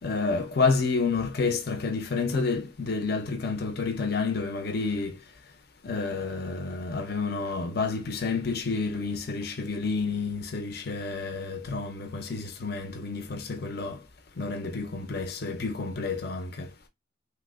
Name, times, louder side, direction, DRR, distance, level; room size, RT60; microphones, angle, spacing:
voice 1, 0.0-5.2 5.8-14.0 14.4-16.7, left 4 dB, 50° left, 0.6 m, -29 dB
3.1 x 2.1 x 3.5 m
head